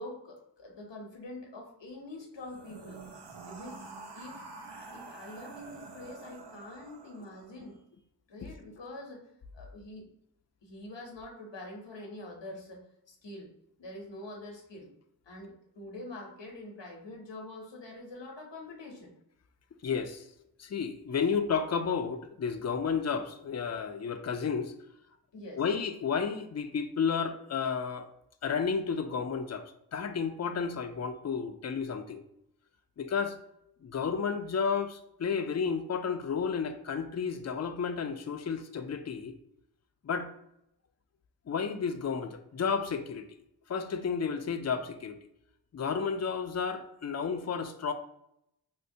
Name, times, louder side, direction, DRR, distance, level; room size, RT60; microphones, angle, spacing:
voice 1, 0.0-3.0 3.5-3.9 4.1-4.4 4.7-7.8 8.3-9.2 9.5-10.1 10.6-13.5 13.8-14.9 15.3-19.1 25.3-25.6, left 1 dB, 90° left, 0 dB, 0.8 m, -45 dB
sound 1, 2.4-7.6, right 4 dB, 75° right, 0.7 m, -47 dB
voice 2, 19.8-20.2 20.6-24.7 25.6-28.1 28.4-29.6 29.9-32.2 33.0-33.4 33.8-39.3 40.0-40.3 41.5-43.3 43.7-45.2 45.7-47.9, left 6 dB, 40° left, 7 dB, 0.4 m, -32 dB
5.2 x 2.1 x 2.6 m, 0.77 s
wide cardioid pair, 40°, 42 cm